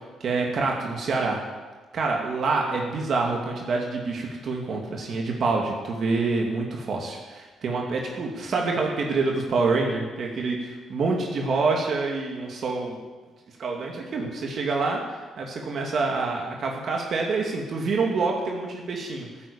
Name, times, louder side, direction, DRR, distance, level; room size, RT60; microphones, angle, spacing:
voice 1, 0.0-1.4 1.9-13.0 13.6-19.3, right 3 dB, 55° right, 0 dB, 2.5 m, -27 dB
14.5 x 8.9 x 8.7 m, 1.3 s
cardioid pair, 90°, 0 cm